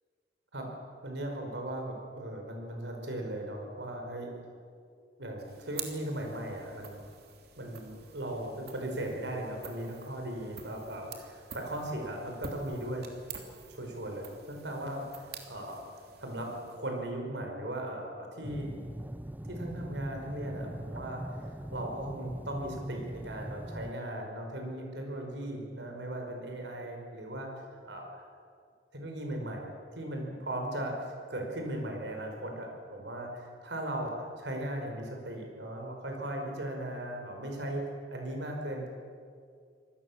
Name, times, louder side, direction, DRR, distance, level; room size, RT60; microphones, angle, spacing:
voice 1, 1.0-4.3 5.2-7.0 7.6-13.1 13.7-15.9 16.2-18.7 19.5-21.2 21.7-27.5 27.8-28.2 28.9-37.8 38.1-38.9, right 1 dB, 85° right, 2 dB, 5.2 m, -38 dB
sound 1, 5.4-17.1, right 6 dB, 65° right, 3.0 m, -48 dB
sound 2, 18.4-23.9, right 1 dB, 10° right, 0.5 m, -41 dB
26.0 x 18.5 x 7.4 m, 2.2 s
head